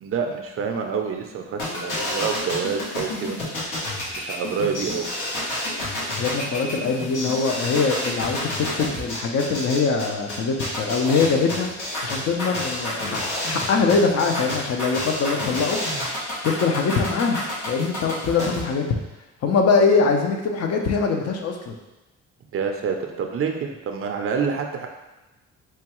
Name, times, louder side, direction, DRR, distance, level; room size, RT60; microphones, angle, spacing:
voice 1, 0.0-3.7 4.1-5.1 18.4-18.5 22.5-24.9, right 6 dB, 50° right, 3 dB, 0.4 m, -27 dB
sound 1, 1.6-18.6, left 1 dB, 85° left, 1.1 m, -29 dB
voice 2, 6.2-15.8 16.4-17.4 17.7-18.8 19.4-21.7, left 4 dB, 55° left, 3 dB, 0.6 m, -23 dB
4.4 x 2.3 x 3.0 m, 1.1 s
cardioid pair, 90°, 30 cm